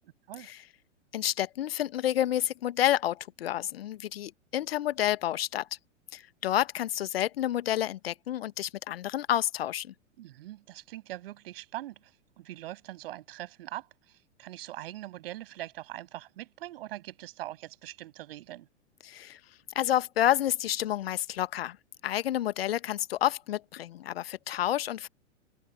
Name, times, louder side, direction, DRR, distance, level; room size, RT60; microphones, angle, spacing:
voice 1, 1.1-5.7 6.1-9.9 19.0-19.4 19.7-21.8 22.0-25.1, left 12 dB, 50° left, 1.0 m, -29 dB
voice 2, 10.2-18.7, right 15 dB, 50° right, 6.8 m, -42 dB
open air
figure-of-eight pair, 100°, 37 cm